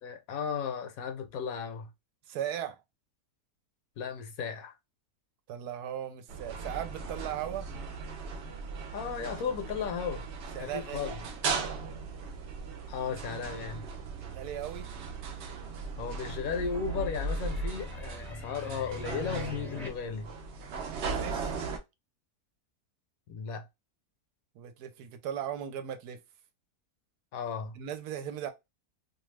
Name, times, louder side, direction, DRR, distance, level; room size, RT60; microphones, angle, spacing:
voice 1, 0.0-1.9 4.0-4.7 8.9-10.2 10.6-11.2 12.9-13.9 16.0-20.3 23.3-23.7 27.3-27.8, left 6 dB, 70° left, 1.0 m, -35 dB
voice 2, 2.3-2.8 5.5-7.7 10.5-11.1 14.3-14.9 20.7-21.5 24.6-26.2 27.7-28.5, right 10 dB, 85° right, 1.1 m, -37 dB
sound 1, 6.3-21.8, right 4 dB, 65° right, 0.7 m, -38 dB
sound 2, 15.0-19.9, left 4 dB, 5° left, 0.4 m, -43 dB
2.6 x 2.3 x 3.1 m
omnidirectional pair, 1.6 m